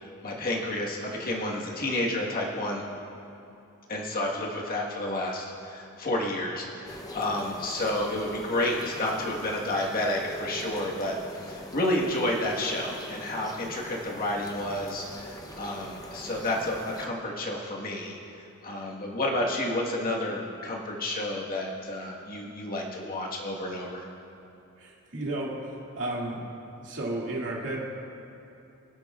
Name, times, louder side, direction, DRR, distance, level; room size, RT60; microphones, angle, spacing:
voice 1, 0.0-2.8 3.9-18.2 18.6-24.1, left 1 dB, 45° left, -2 dB, 1.5 m, -30 dB
sound 1, 6.9-17.1, equal, 15° left, 0.7 m, -42 dB
voice 2, 24.8-26.4 26.8-27.8, right 2 dB, 60° right, -4 dB, 2.4 m, -33 dB
24.0 x 8.1 x 2.4 m, 2.9 s
head